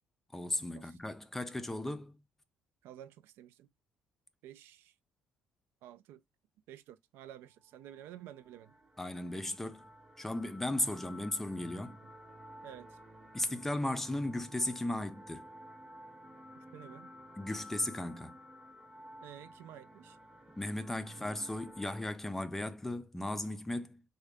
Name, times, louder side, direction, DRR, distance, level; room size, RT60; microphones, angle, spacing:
voice 1, 0.3-2.2 9.0-9.8 10.2-12.0 13.3-15.5 17.4-18.4 20.5-24.0, left 1 dB, 10° left, 0.3 m, -36 dB
voice 2, 2.8-3.7 4.4-4.9 5.8-6.2 6.7-8.7 12.6-13.0 16.7-17.1 19.2-20.2, right 11 dB, 85° right, 0.4 m, -51 dB
sound 1, 7.9-22.0, equal, 15° right, 0.9 m, -53 dB
3.7 x 2.2 x 3.3 m
cardioid pair, 150°, 4 cm